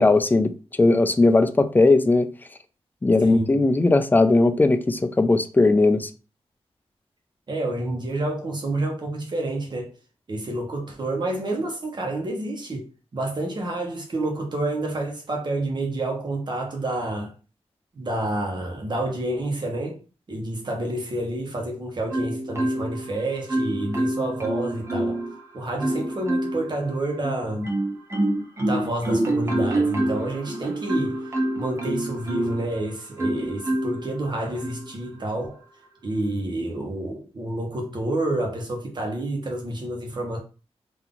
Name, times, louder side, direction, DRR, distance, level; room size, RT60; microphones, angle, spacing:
voice 1, 0.0-2.3 3.0-6.1, left 2 dB, 15° left, 0.4 m, -18 dB
voice 2, 3.2-3.5 7.5-9.9 10.3-12.9 13.1-17.3 17.9-20.0 20.3-25.2 25.5-27.7 28.6-31.2 31.6-35.6 36.0-40.4, right 1 dB, 40° right, 1.3 m, -29 dB
Marimba xylophone, 22.1-23.1 23.5-25.3 25.8-26.7 27.2-32.7 33.2-34.1 34.6-34.9, right 1 dB, 25° right, 0.9 m, -26 dB
3.9 x 2.8 x 3.8 m
wide cardioid pair, 145°, 11 cm